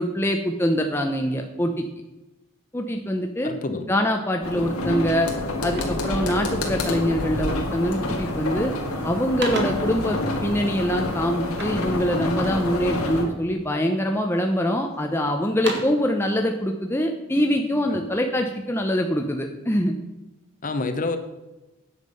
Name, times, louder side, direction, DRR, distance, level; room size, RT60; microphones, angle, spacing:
voice 1, 0.0-1.8 2.7-3.5 3.9-5.3 5.6-8.7 9.0-19.9, equal, 10° left, 3 dB, 0.6 m, -24 dB
voice 2, 3.4-3.9 4.6-4.8 17.9-18.0 20.6-21.2, left 3 dB, 40° left, 8 dB, 0.8 m, -28 dB
sound 1, 4.4-13.2, left 1 dB, 90° left, 2.0 m, -28 dB
sound 2, 4.8-5.0 5.3-6.8 7.5-7.8 8.1-8.6 9.0-10.0 11.5-12.7 13.2-13.9 14.4-15.0 15.4-16.1, right 2 dB, 50° right, 1.6 m, -36 dB
9.4 x 7.5 x 5.4 m, 1.0 s
head